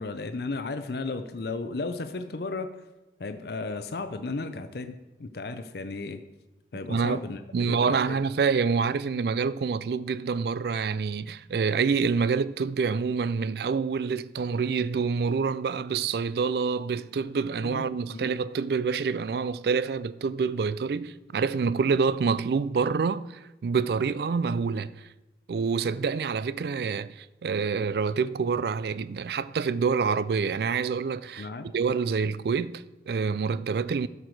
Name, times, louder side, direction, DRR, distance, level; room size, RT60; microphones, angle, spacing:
voice 1, 0.0-2.7 3.2-6.2 6.7-8.2 17.6-18.3 31.4-31.7, left 3 dB, 60° left, 0.6 m, -34 dB
voice 2, 6.9-7.2 7.5-24.9 25.5-31.5 31.7-34.1, right 5 dB, 60° right, 0.3 m, -27 dB
11.5 x 6.7 x 4.6 m
head